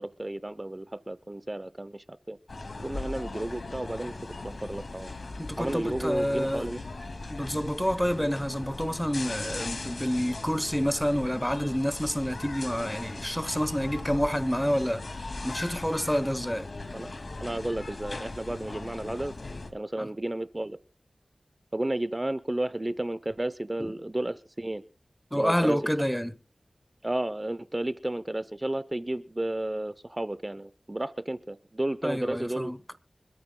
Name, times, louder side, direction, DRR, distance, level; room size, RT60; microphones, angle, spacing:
voice 1, 0.0-2.4 2.8-4.1 4.4-5.1 5.6-6.8 16.9-17.1 17.4-19.3 19.7-20.8 21.7-24.8 25.3-25.8 27.0-32.7, right 1 dB, 25° right, 0.6 m, -32 dB
sound 1, 2.5-19.7, left 2 dB, 70° left, 2.1 m, -39 dB
voice 2, 5.4-6.7 7.3-16.7 20.0-20.1 23.8-23.9 25.3-26.3 32.0-32.8, equal, 5° left, 0.8 m, -28 dB
25.5 x 13.5 x 2.2 m
wide cardioid pair, 65°, 0 cm